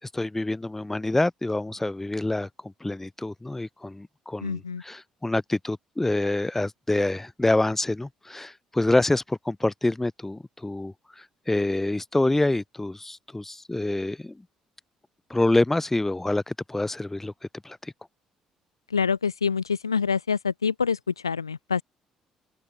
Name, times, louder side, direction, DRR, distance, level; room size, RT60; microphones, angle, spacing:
voice 1, 0.1-4.6 4.8-14.4 15.3-17.3 17.6-17.9, left 2 dB, 15° left, 3.5 m, -26 dB
voice 2, 4.4-4.8 18.9-21.8, left 5 dB, 90° left, 1.1 m, -26 dB
open air
figure-of-eight pair, 50°, 2 cm